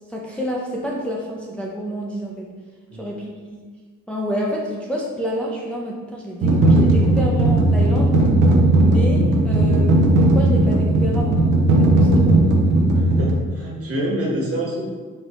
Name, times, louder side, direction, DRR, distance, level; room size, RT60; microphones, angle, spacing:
voice 1, 0.1-2.5 3.0-3.6 4.1-8.2 8.7-9.9 10.2-11.5 11.8-12.5, equal, 5° left, -3 dB, 0.5 m, -28 dB
sound 1, 6.4-13.3, right 1 dB, 85° right, 0.7 m, -16 dB
voice 2, 12.9-14.9, right 1 dB, 50° right, -3 dB, 1.3 m, -26 dB
4.5 x 2.8 x 3.1 m, 1.4 s
cardioid pair, 90°, 30 cm